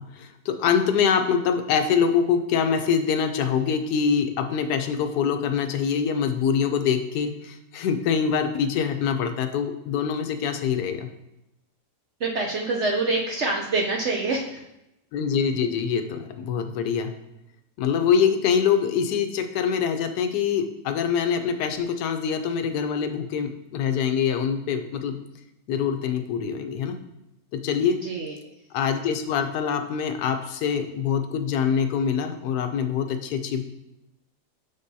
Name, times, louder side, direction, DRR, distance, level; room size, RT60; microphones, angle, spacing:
voice 1, 0.0-11.1 15.1-17.1 17.8-25.2 25.7-27.0 27.5-28.0 28.7-33.6, left 7 dB, 85° left, 7 dB, 1.2 m, -24 dB
voice 2, 12.2-14.6 28.0-28.4, right 3 dB, 60° right, 0 dB, 0.7 m, -26 dB
6.7 x 5.3 x 2.7 m, 0.88 s
omnidirectional pair, 1.7 m